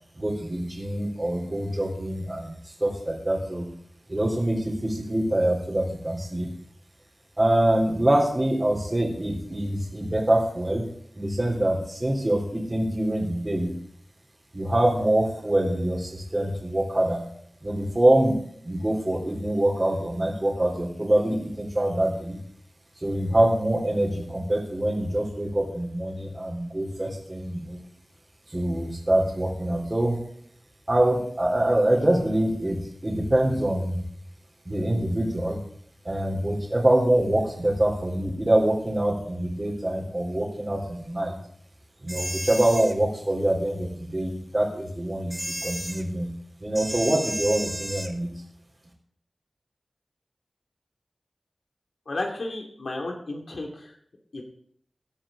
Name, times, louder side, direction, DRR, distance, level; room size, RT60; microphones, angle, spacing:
voice 1, 0.2-2.5 2.8-3.7 4.1-6.5 7.4-10.9 11.2-13.7 14.5-17.2 17.6-18.4 18.6-22.4 23.0-27.8 28.5-30.2 30.9-34.0 34.7-35.6 36.0-41.4 42.0-46.3 46.6-48.3, right 1 dB, 25° right, -5 dB, 3.5 m, -25 dB
sound 1, 42.1-42.9 45.3-46.0 46.7-48.1, right 1 dB, 10° right, 1.4 m, -33 dB
voice 2, 52.1-53.9 54.3-54.4, left 2 dB, 75° left, 1 dB, 2.4 m, -33 dB
18.5 x 12.0 x 3.8 m, 0.64 s
wide cardioid pair, 85°, 0 cm